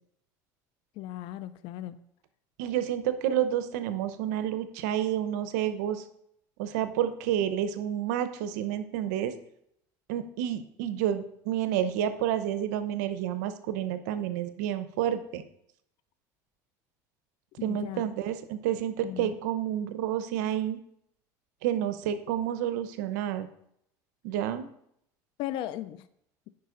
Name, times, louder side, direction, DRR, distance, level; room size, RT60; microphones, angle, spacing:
voice 1, 1.0-2.0 17.6-18.1 19.0-19.4 25.4-26.1, left 13 dB, 65° left, 14 dB, 0.4 m, -37 dB
voice 2, 2.6-6.0 6.6-9.3 10.1-15.4 17.6-20.8 21.6-23.5 24.2-24.7, right 10 dB, 90° right, 11 dB, 0.7 m, -29 dB
9.6 x 5.1 x 3.8 m, 0.73 s
supercardioid pair, 115°, 9 cm